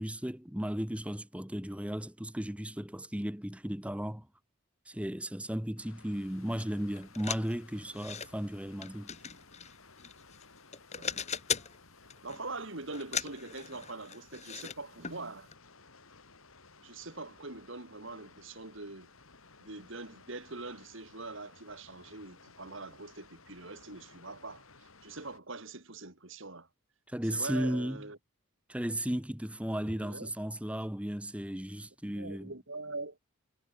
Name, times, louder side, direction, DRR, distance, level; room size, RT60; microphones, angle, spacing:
voice 1, 0.0-4.3 4.9-9.1 27.1-28.0 28.7-32.5, equal, 5° right, 1.0 m, -35 dB
Water, 5.8-25.4, left 4 dB, 70° left, 5.3 m, -58 dB
sound 1, 6.6-6.7 7.0-8.3 8.8-10.4 10.7-11.8 12.1-12.5 12.9-14.8 15.0-15.2 15.5-15.6, left 7 dB, 30° left, 4.0 m, -38 dB
voice 2, 12.2-15.5 16.8-19.1 19.6-26.7 27.3-28.2 29.8-30.3 32.1-33.2, right 3 dB, 60° right, 2.8 m, -43 dB
head